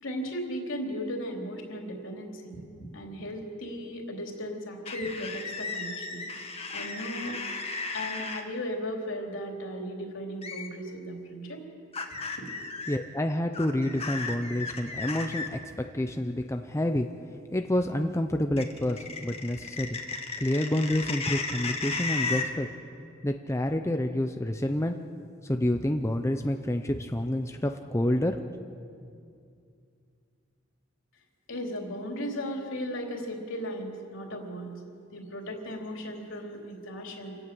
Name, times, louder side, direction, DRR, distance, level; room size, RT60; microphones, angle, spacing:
voice 1, 0.0-6.3 6.7-7.4 7.9-11.6 12.4-12.5 31.5-34.8 35.1-37.4, equal, 70° left, 1 dB, 3.6 m, -36 dB
sound 1, 4.9-8.4 10.4-10.7 11.9-13.0 13.5-15.5 18.6-22.5, left 4 dB, 30° left, 1.9 m, -34 dB
voice 2, 12.9-15.6 15.9-17.1 17.5-20.0 20.4-22.7 23.2-25.0 25.5-28.4, left 1 dB, 15° left, 5 dB, 0.7 m, -28 dB
27.5 x 17.5 x 7.8 m, 2.4 s
head